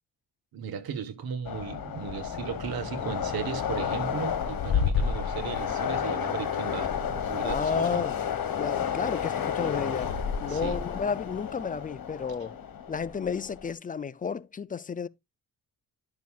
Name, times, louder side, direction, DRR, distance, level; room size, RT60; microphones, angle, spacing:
voice 1, 0.5-8.1 10.5-10.8, right 7 dB, 85° right, 1.4 m, -36 dB
Train, 1.5-13.7, left 7 dB, 70° left, 1.4 m, -31 dB
voice 2, 7.4-8.2 8.5-10.1 10.4-12.6 12.9-15.1, left 6 dB, 25° left, 0.4 m, -32 dB
10.5 x 6.1 x 2.4 m
cardioid pair, 85°, 36 cm